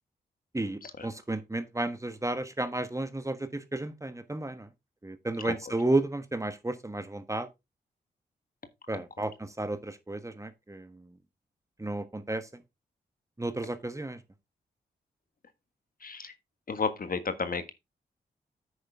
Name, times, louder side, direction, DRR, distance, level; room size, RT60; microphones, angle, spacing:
voice 1, 0.5-4.7 5.0-7.5 8.9-11.0 11.8-12.5 13.4-14.2, right 2 dB, 15° right, 1.4 m, -32 dB
voice 2, 8.9-9.3 16.0-16.3 16.7-17.7, left 5 dB, 50° left, 1.6 m, -33 dB
9.6 x 6.5 x 3.6 m
supercardioid pair, 40°, 19 cm